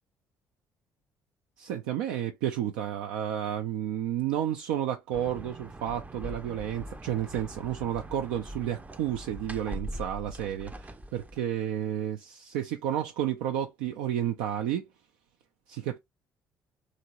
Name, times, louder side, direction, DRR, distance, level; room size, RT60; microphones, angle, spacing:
voice 1, 1.6-14.9 15.7-16.0, right 10 dB, 70° right, 0.4 m, -31 dB
sound 1, 5.1-11.4, right 1 dB, 15° right, 0.5 m, -42 dB
2.9 x 2.6 x 2.8 m
hypercardioid pair, 50°, 10 cm